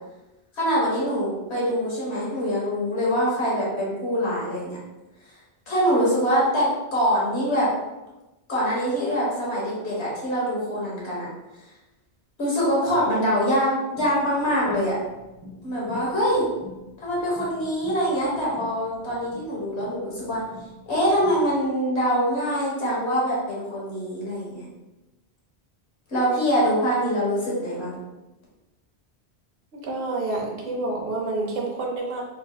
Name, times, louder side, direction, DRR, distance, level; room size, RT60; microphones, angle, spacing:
voice 1, 0.6-4.8 5.7-7.7 8.5-11.3 12.4-15.0 15.6-16.5 17.0-20.4 20.9-24.6 26.1-27.9, equal, 80° left, -6 dB, 1.5 m, -24 dB
sound 1, 14.0-21.7, left 1 dB, 10° right, 1.3 m, -46 dB
voice 2, 29.8-32.2, right 2 dB, 60° right, 0 dB, 0.9 m, -28 dB
3.4 x 3.2 x 2.2 m, 1.0 s
omnidirectional pair, 1.1 m